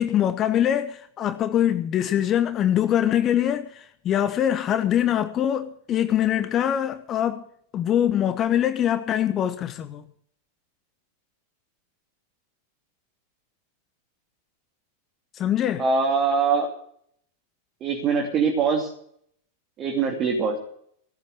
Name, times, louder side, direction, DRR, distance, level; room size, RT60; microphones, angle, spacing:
voice 1, 0.0-7.5 7.7-10.0 15.3-15.8, left 10 dB, 30° left, 1.0 m, -23 dB
voice 2, 15.8-16.7 17.8-18.9 19.8-20.6, right 5 dB, 30° right, 2.9 m, -22 dB
17.5 x 7.7 x 8.1 m
figure-of-eight pair, 90°, 0 cm